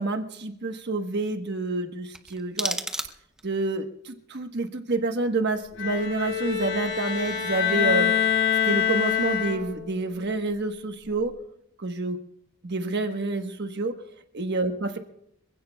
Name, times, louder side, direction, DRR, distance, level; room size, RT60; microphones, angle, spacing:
voice 1, 0.0-2.8 3.4-8.1 8.7-11.3 11.8-12.2 12.6-13.9 14.3-15.0, right 2 dB, 55° right, 6 dB, 1.2 m, -28 dB
sound 1, 2.1-3.6, right 1 dB, 5° right, 0.7 m, -33 dB
Bowed string instrument, 5.8-9.9, left 8 dB, 65° left, 5.1 m, -25 dB
26.5 x 16.0 x 2.3 m, 0.77 s
head